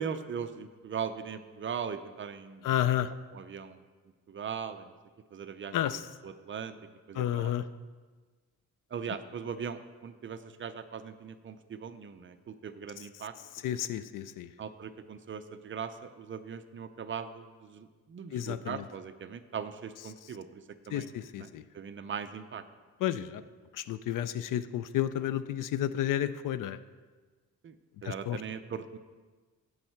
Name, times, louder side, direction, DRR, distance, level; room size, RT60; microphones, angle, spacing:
voice 1, 0.0-2.7 3.3-3.8 4.3-4.9 5.3-5.8 6.2-6.8 7.1-7.5 8.9-13.3 14.6-15.9 16.2-20.6 20.9-21.1 21.4-21.5 21.7-22.6 27.6-27.8 28.0-29.0, right 7 dB, 40° right, 10 dB, 0.5 m, -39 dB
voice 2, 2.6-3.1 5.7-6.1 7.1-7.7 13.0-13.1 13.5-14.5 18.3-18.9 20.2-20.3 20.9-21.6 23.0-23.4 23.7-26.8 28.0-28.4, left 11 dB, 75° left, 14 dB, 0.5 m, -31 dB
16.0 x 5.5 x 4.5 m, 1.4 s
cardioid pair, 135°, 32 cm